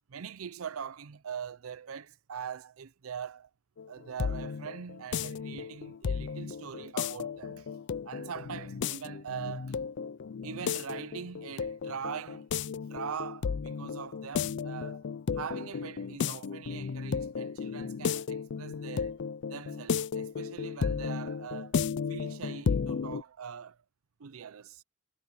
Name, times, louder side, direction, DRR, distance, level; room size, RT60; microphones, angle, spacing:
voice 1, 0.1-3.5 3.9-7.7 8.1-9.8 10.4-12.5 12.9-15.0 15.3-19.2 19.5-21.8 22.1-23.8 24.2-24.8, right 7 dB, 70° right, 0.5 m, -42 dB
sound 1, 3.8-23.2, left 6 dB, 55° left, 0.4 m, -34 dB
head